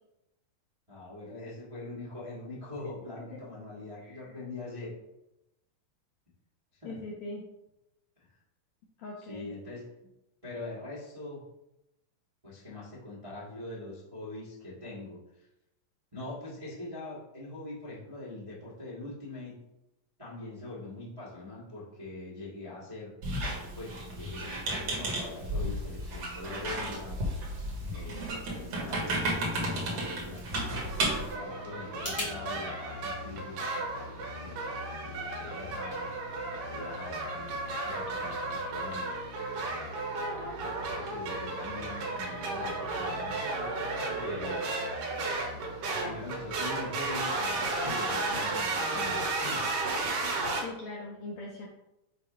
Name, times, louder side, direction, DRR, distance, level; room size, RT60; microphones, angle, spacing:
voice 1, 0.9-4.9 6.8-7.0 9.2-9.9 10.4-11.4 12.4-15.5 16.1-19.5 20.2-23.1 23.7-27.2 27.9-30.4 31.1-36.1 36.7-39.2 40.6-43.3 44.1-44.9 45.8-49.7, left 2 dB, 20° right, -9 dB, 1.0 m, -43 dB
voice 2, 4.0-4.4 6.8-7.4 9.0-9.5 50.6-51.7, left 2 dB, 75° left, -2 dB, 1.7 m, -41 dB
Squeak, 23.2-31.3, right 1 dB, 55° right, 1.8 m, -33 dB
sound 1, 30.7-50.6, right 2 dB, 75° right, 2.7 m, -34 dB
sound 2, 31.9-32.3, left 1 dB, 20° left, 1.3 m, -42 dB
6.7 x 2.8 x 5.0 m, 0.89 s
omnidirectional pair, 3.9 m